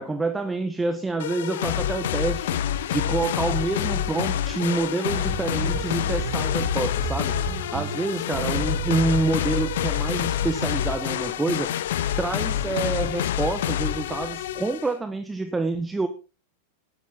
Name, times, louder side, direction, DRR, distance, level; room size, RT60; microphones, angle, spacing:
voice 1, 0.0-2.6 2.9-7.4 7.7-11.7 12.2-16.1, right 3 dB, 10° right, 9 dB, 1.2 m, -27 dB
sound 1, 1.2-14.9, left 10 dB, 55° left, 0.8 m, -27 dB
sound 2, 5.1-10.9, right 9 dB, 40° right, 1.8 m, -35 dB
13.5 x 11.5 x 4.1 m, 0.33 s
figure-of-eight pair, 90°, 0 cm